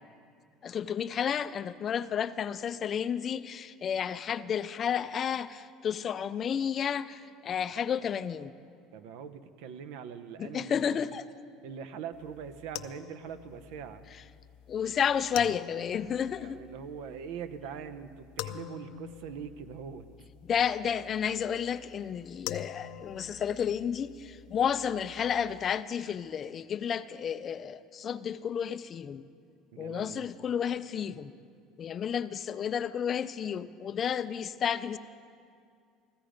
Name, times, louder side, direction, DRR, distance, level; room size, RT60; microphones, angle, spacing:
voice 1, 0.6-8.5 10.4-11.3 14.7-16.6 20.4-29.2 29.8-31.3 31.8-35.0, left 8 dB, 30° left, 14 dB, 0.4 m, -31 dB
voice 2, 8.9-10.8 11.6-14.1 16.4-20.1 29.7-30.3, right 7 dB, 75° right, 12 dB, 0.8 m, -42 dB
sound 1, 12.1-25.7, left 13 dB, 80° left, 0.6 m, -46 dB
15.0 x 14.5 x 5.1 m, 2.4 s
cardioid pair, 145°, 0 cm